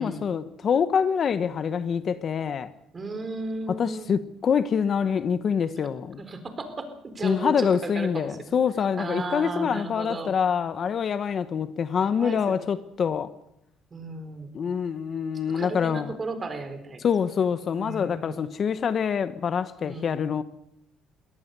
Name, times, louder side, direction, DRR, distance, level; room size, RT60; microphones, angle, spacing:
voice 1, 0.0-2.7 3.7-6.2 7.2-13.3 14.5-16.1 17.0-20.4, left 7 dB, 45° left, 1.1 m, -25 dB
voice 2, 2.9-4.1 6.2-6.9 7.1-8.3 9.0-10.3 12.0-12.6 13.9-14.5 15.5-17.1 17.8-18.4 19.8-20.3, right 2 dB, 30° right, 4.0 m, -35 dB
22.0 x 18.0 x 6.9 m
cardioid pair, 105°, 0 cm